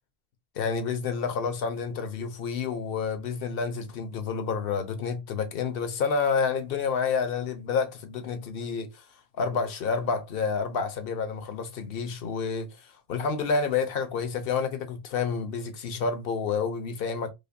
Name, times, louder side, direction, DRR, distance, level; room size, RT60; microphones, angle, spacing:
voice 1, 0.6-9.0 9.4-12.8 13.1-17.3, left 5 dB, 70° left, 0.9 m, -29 dB
5.0 x 2.1 x 2.5 m
omnidirectional pair, 1.0 m